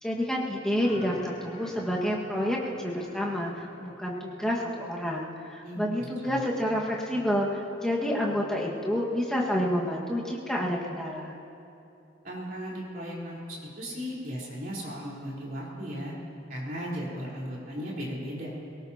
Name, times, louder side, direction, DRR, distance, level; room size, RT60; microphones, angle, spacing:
voice 1, 0.0-11.4, equal, 5° left, -4 dB, 1.7 m, -29 dB
sound 1, 0.8-6.3, left 1 dB, 75° left, 2.3 m, -49 dB
voice 2, 5.6-6.4 12.2-16.1 16.5-18.5, equal, 45° right, -6 dB, 3.9 m, -36 dB
22.5 x 18.5 x 2.9 m, 2.7 s
head